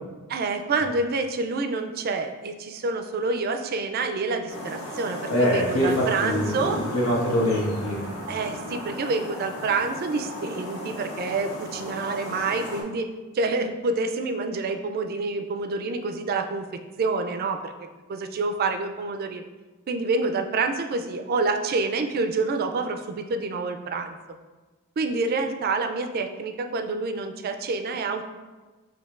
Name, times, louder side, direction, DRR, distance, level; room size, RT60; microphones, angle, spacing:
voice 1, 0.3-6.8 8.3-13.1 13.3-16.7 17.0-17.7 18.1-19.4 19.9-24.2 25.0-28.2, right 3 dB, 45° right, 6 dB, 0.3 m, -27 dB
sound 1, 4.5-12.8, left 1 dB, 65° left, 0.8 m, -36 dB
voice 2, 5.3-8.0, equal, 85° left, -5 dB, 1.4 m, -24 dB
6.2 x 2.7 x 2.4 m, 1.2 s
head